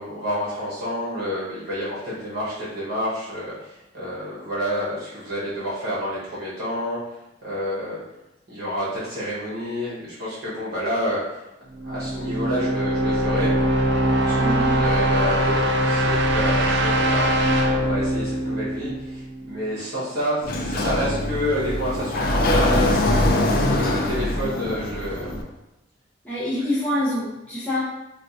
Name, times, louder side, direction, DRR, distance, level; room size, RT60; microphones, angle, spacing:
voice 1, 0.0-7.0 7.4-8.0 8.5-11.2 11.8-13.5 14.2-23.3 23.6-25.3, equal, 60° right, -9 dB, 1.2 m, -29 dB
sound 1, 11.8-19.6, right 1 dB, 75° right, 0.4 m, -22 dB
voice 2, 14.4-14.8 26.2-27.8, left 1 dB, 10° left, -9 dB, 0.6 m, -26 dB
Sliding door, 20.4-25.4, left 1 dB, 50° left, 0.4 m, -23 dB
4.2 x 2.5 x 2.5 m, 0.95 s
head